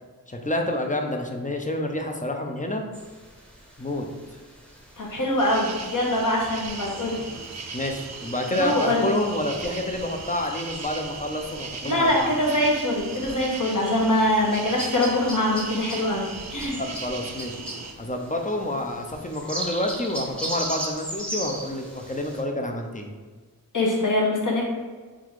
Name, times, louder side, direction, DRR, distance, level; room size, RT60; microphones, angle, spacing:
voice 1, 0.3-2.8 3.8-4.0 7.7-12.3 16.7-17.6 18.0-23.1, left 1 dB, 20° left, 3 dB, 0.5 m, -28 dB
sound 1, 2.9-22.4, right 1 dB, 5° left, 0.8 m, -40 dB
voice 2, 5.0-7.2 8.5-9.0 11.8-16.8 23.7-24.7, left 1 dB, 55° left, -2 dB, 1.0 m, -23 dB
sound 2, 5.4-17.9, right 4 dB, 45° right, 0.5 m, -38 dB
3.8 x 2.4 x 4.6 m, 1.4 s
wide cardioid pair, 50°, 37 cm